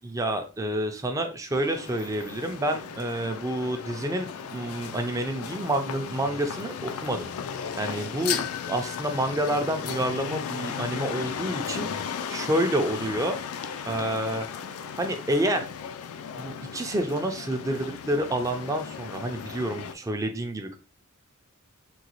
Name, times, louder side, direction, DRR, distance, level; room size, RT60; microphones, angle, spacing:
voice 1, 0.0-7.3 7.7-11.9 12.3-13.4 13.9-14.5 15.0-15.7 16.4-20.8, right 1 dB, 15° right, 5 dB, 0.4 m, -28 dB
sound 1, 1.5-19.9, left 7 dB, 75° left, 0.4 m, -36 dB
3.7 x 2.3 x 2.9 m, 0.34 s
head